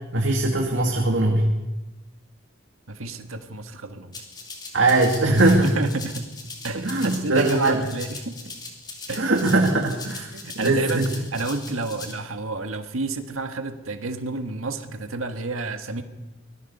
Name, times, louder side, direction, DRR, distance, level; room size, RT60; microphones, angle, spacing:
voice 1, 0.1-1.5 4.7-5.7 6.7-7.8 9.2-11.1, right 2 dB, 60° right, 1 dB, 2.2 m, -21 dB
voice 2, 2.9-4.2 5.4-6.3 6.6-8.6 9.1-9.4 10.3-16.0, right 3 dB, 85° right, 6 dB, 1.8 m, -30 dB
Rattle (instrument), 4.1-12.1, left 3 dB, 20° left, 3.5 m, -39 dB
25.0 x 21.5 x 5.6 m, 1.1 s
head